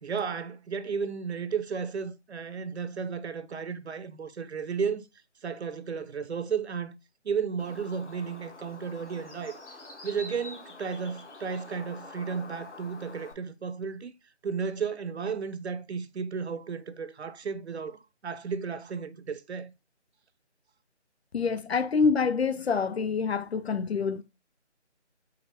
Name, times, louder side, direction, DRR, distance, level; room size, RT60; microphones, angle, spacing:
voice 1, 0.0-5.0 5.4-7.0 7.2-9.6 10.0-14.1 14.4-19.7, right 6 dB, 65° right, 0.6 m, -33 dB
Bird, 7.6-13.3, left 2 dB, 80° left, 1.3 m, -46 dB
voice 2, 21.3-24.2, left 5 dB, 60° left, 0.5 m, -26 dB
4.9 x 2.1 x 4.3 m
figure-of-eight pair, 165°, 35 cm